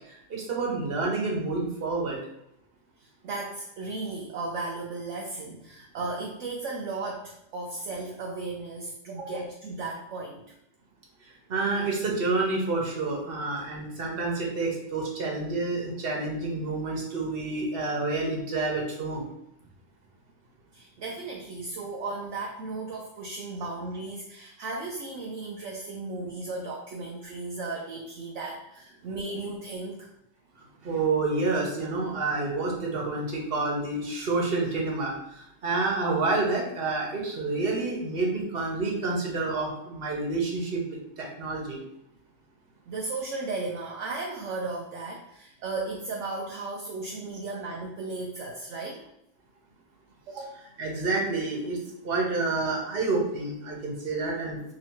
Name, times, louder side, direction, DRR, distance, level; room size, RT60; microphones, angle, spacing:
voice 1, 0.1-2.2 11.2-19.2 30.8-40.8 41.2-41.8 50.8-51.8 52.0-54.6, right 3 dB, 50° right, -1 dB, 1.2 m, -28 dB
voice 2, 3.0-10.5 20.7-30.1 42.9-49.0 50.3-50.5, right 3 dB, 70° right, -1 dB, 0.9 m, -35 dB
3.0 x 2.8 x 4.4 m, 0.82 s
omnidirectional pair, 1.4 m